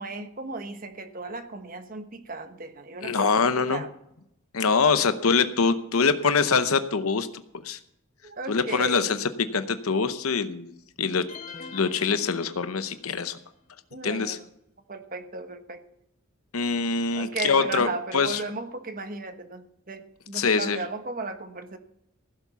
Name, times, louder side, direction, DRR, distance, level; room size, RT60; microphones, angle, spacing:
voice 1, 0.0-3.9 8.2-9.0 13.9-14.4 14.9-15.8 17.1-21.8, right 3 dB, 40° right, 8 dB, 1.2 m, -35 dB
voice 2, 3.0-3.8 4.5-7.8 8.5-10.7 11.0-11.2 11.7-13.4 14.0-14.4 16.5-17.9 18.1-18.4 20.3-20.8, left 5 dB, 90° left, 11 dB, 0.8 m, -24 dB
sound 1, 11.3-13.1, left 4 dB, 35° left, 0.8 m, -44 dB
16.0 x 7.3 x 7.0 m, 0.79 s
head